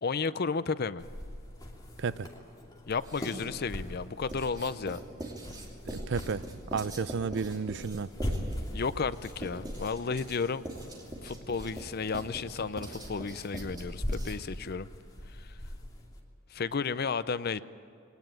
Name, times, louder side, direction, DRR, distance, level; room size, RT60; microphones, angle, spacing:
voice 1, 0.0-1.1 2.9-5.0 8.7-10.6 11.2-14.9 15.3-15.6 16.5-17.6, left 5 dB, 45° left, 15 dB, 0.5 m, -33 dB
sound 1, 1.0-16.2, equal, 20° left, 2.6 m, -41 dB
Writing, 2.9-3.6 4.3-14.6, right 1 dB, 20° right, 2.9 m, -43 dB
voice 2, 5.9-6.4 6.7-8.1, right 5 dB, 55° right, 17 dB, 0.5 m, -32 dB
22.0 x 18.5 x 9.0 m, 2.5 s
head